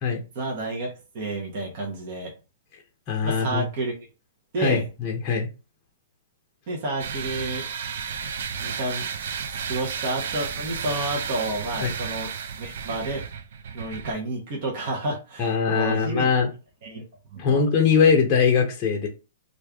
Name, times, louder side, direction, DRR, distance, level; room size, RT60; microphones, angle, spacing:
voice 1, 0.3-2.3 3.2-3.9 4.5-4.8 6.7-7.6 8.6-9.0 9.7-12.3 12.6-13.2 13.7-16.3 16.8-17.0 17.3-17.6, right 2 dB, 40° right, -1 dB, 1.1 m, -30 dB
voice 2, 3.1-3.6 4.6-5.5 11.8-11.9 15.4-16.5 17.4-19.1, left 6 dB, 20° left, 1 dB, 0.8 m, -21 dB
sound 1, 7.0-14.1, right 7 dB, 60° right, 0.5 m, -33 dB
3.2 x 2.6 x 3.4 m, 0.30 s
hypercardioid pair, 165°, 0 cm